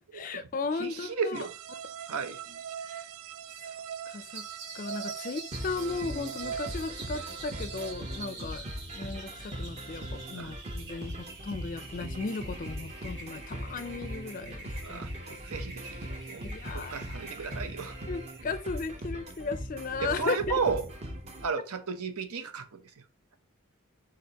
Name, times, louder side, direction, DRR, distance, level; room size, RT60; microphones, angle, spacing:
voice 1, 0.0-1.5 2.5-2.6 2.9-3.0 4.1-4.5 4.7-8.7 8.9-15.1 16.4-17.1 18.1-20.6, left 4 dB, 40° left, 0.4 m, -36 dB
voice 2, 0.8-1.5 2.1-2.4 10.3-10.5 14.8-16.0 16.3-16.4 16.7-17.9 20.0-20.9 21.4-22.7, right 5 dB, 90° right, 0.7 m, -33 dB
sound 1, 1.3-7.9, right 8 dB, 70° right, 0.3 m, -41 dB
sound 2, 4.3-19.6, right 3 dB, 50° right, 1.4 m, -47 dB
sound 3, 5.5-21.5, equal, 30° right, 0.7 m, -40 dB
4.4 x 3.8 x 2.8 m
head